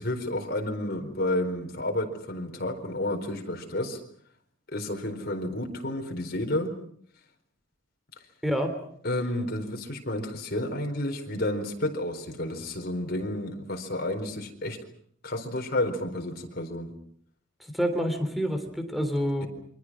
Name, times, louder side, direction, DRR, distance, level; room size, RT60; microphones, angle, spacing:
voice 1, 0.0-4.0 4.7-6.7 9.0-14.8 15.2-16.9, left 1 dB, 55° left, 3 dB, 4.4 m, -31 dB
voice 2, 8.4-8.7 17.6-19.5, equal, ahead, 7 dB, 3.4 m, -27 dB
28.5 x 24.0 x 6.2 m, 0.63 s
head